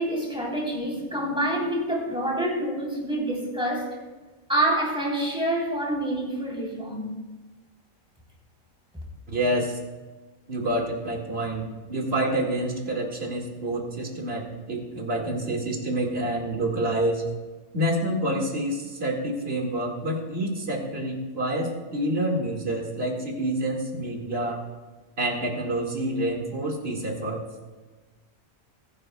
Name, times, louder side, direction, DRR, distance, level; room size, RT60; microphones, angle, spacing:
voice 1, 0.0-4.0 4.5-7.2, right 1 dB, 5° right, -3 dB, 3.5 m, -27 dB
voice 2, 9.3-9.8 10.5-17.2 17.7-24.6 25.2-27.4, right 1 dB, 45° right, 0 dB, 2.3 m, -28 dB
20.5 x 10.0 x 2.3 m, 1.2 s
omnidirectional pair, 1.5 m